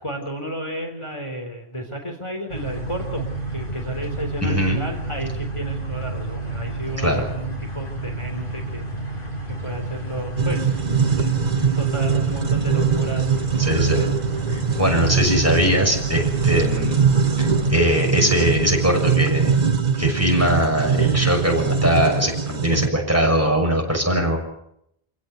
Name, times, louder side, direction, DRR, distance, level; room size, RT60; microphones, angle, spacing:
voice 1, 0.0-10.8 11.2-11.4 11.8-14.2, right 1 dB, 30° left, 2 dB, 3.6 m, -32 dB
sound 1, 2.5-17.9, right 2 dB, 55° left, 6.3 m, -30 dB
voice 2, 4.4-4.8 7.0-7.3 13.6-14.0 14.5-17.0 17.4-19.5 20.0-24.4, equal, 15° right, 1 dB, 6.6 m, -21 dB
sound 2, 10.4-22.9, right 6 dB, 45° right, 1.1 m, -22 dB
27.5 x 17.0 x 8.0 m, 0.76 s
omnidirectional pair, 1.1 m